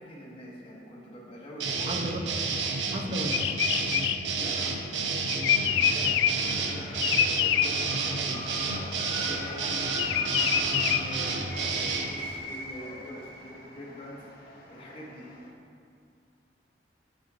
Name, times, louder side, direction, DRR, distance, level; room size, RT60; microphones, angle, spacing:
voice 1, 0.0-2.0 4.3-5.0 5.6-15.3, equal, 30° left, -6 dB, 1.3 m, -44 dB
sound 1, 1.6-12.1, right 4 dB, 85° right, 0.6 m, -30 dB
voice 2, 1.9-2.3 2.9-3.9, right 1 dB, 35° right, 3 dB, 0.5 m, -35 dB
sound 2, 3.3-6.5 7.0-7.7 10.0-11.0, left 10 dB, 80° left, 0.3 m, -25 dB
sound 3, 5.5-15.5, left 1 dB, 60° left, 1.2 m, -41 dB
7.7 x 5.9 x 2.8 m, 2.3 s
head